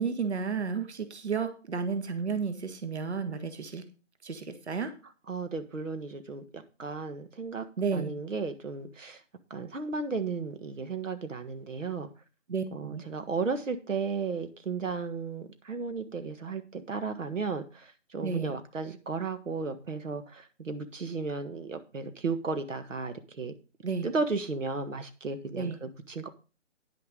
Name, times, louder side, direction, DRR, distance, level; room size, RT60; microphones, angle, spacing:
voice 1, 0.0-3.8 4.2-4.9 7.8-8.1 12.5-13.0 18.2-18.5 23.8-24.1 25.5-25.8, right 5 dB, 60° right, 9 dB, 1.6 m, -32 dB
voice 2, 5.3-7.6 7.9-9.2 9.5-12.1 12.7-23.5 24.0-26.3, right 4 dB, 80° right, 9 dB, 1.6 m, -34 dB
10.5 x 6.8 x 5.2 m, 0.33 s
hypercardioid pair, 175°, 37 cm